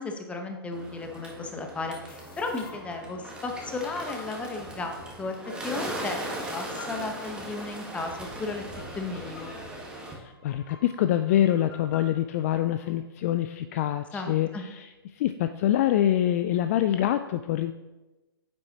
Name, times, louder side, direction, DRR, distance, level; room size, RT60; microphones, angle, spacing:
voice 1, 0.0-5.4 5.6-8.6 8.9-9.5 14.1-14.7, left 3 dB, 10° left, 4 dB, 0.9 m, -35 dB
Bird, 0.7-10.1, right 1 dB, 5° right, 1.4 m, -39 dB
sound 1, 2.1-12.9, left 4 dB, 60° left, 1.5 m, -50 dB
voice 2, 10.2-14.9 15.2-17.7, left 12 dB, 35° left, 9 dB, 0.4 m, -25 dB
9.6 x 7.8 x 2.9 m, 1.1 s
hypercardioid pair, 130°, 13 cm